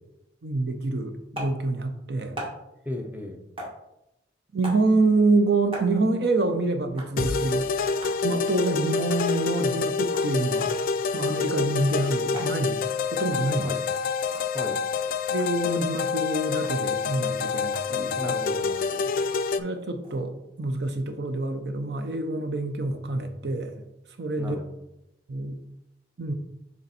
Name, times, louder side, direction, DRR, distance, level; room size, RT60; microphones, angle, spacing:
voice 1, 0.4-2.4 4.5-7.7 8.2-10.7 11.1-12.8 13.1-13.8 15.3-18.3 19.6-23.7 24.2-24.6 25.3-25.6 26.2-26.3, right 2 dB, 60° right, 7 dB, 0.6 m, -26 dB
sound 1, 1.3-1.6 2.4-2.6 3.6-3.8 4.6-4.9 5.7-5.9 7.0-7.1 8.0-8.2 9.1-9.3 10.0-10.3 11.2-11.4 12.3-12.6 13.3-13.5 14.3-14.5 15.4-15.5 16.6-16.8 17.7-17.9 19.5-20.2, equal, 30° right, 1.3 m, -38 dB
voice 2, 2.8-3.4 13.6-13.8 14.5-14.8 18.2-19.2 24.4-24.7, left 1 dB, 10° right, 3 dB, 0.6 m, -36 dB
sound 2, 7.2-19.6, left 5 dB, 50° left, 0.3 m, -27 dB
6.6 x 3.5 x 4.2 m, 0.88 s
head